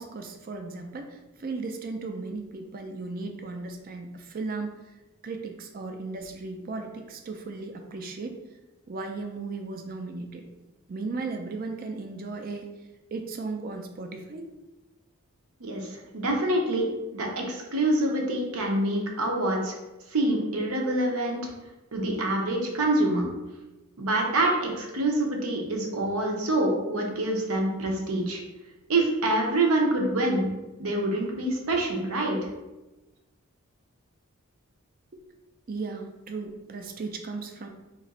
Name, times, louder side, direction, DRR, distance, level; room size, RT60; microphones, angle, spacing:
voice 1, 0.0-4.7 5.2-8.4 8.9-10.4 10.9-12.7 13.1-14.5 35.1-35.2 35.7-37.7, right 3 dB, 40° right, 4 dB, 0.4 m, -36 dB
voice 2, 15.6-19.7 20.1-21.4 21.9-23.3 24.0-28.4 28.9-30.4 30.8-32.4, right 1 dB, 85° right, 0 dB, 0.8 m, -26 dB
2.9 x 2.5 x 4.1 m, 1.1 s
head